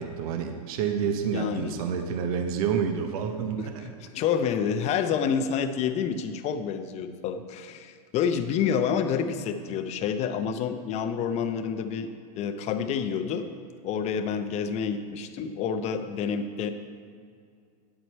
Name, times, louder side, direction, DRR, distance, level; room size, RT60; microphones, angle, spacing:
voice 1, 0.0-3.9, right 7 dB, 65° right, 5 dB, 0.9 m, -29 dB
voice 2, 1.3-1.7 3.6-3.7 4.0-12.1 12.4-13.5 13.8-16.7, left 7 dB, 35° left, 9 dB, 0.7 m, -28 dB
9.3 x 7.9 x 4.5 m, 2.2 s
hypercardioid pair, 130°, 21 cm